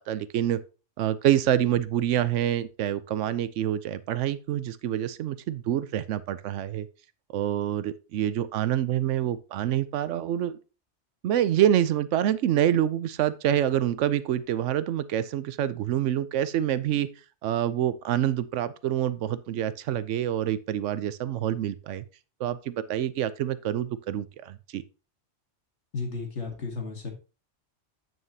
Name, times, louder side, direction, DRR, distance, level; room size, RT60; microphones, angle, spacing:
voice 1, 0.1-0.6 1.0-6.9 7.3-10.6 11.2-17.1 17.4-22.0 22.4-24.8, right 11 dB, 85° right, 0.9 m, -26 dB
voice 2, 25.9-27.1, left 4 dB, 70° left, 2.1 m, -33 dB
8.9 x 6.4 x 2.8 m
omnidirectional pair, 1.2 m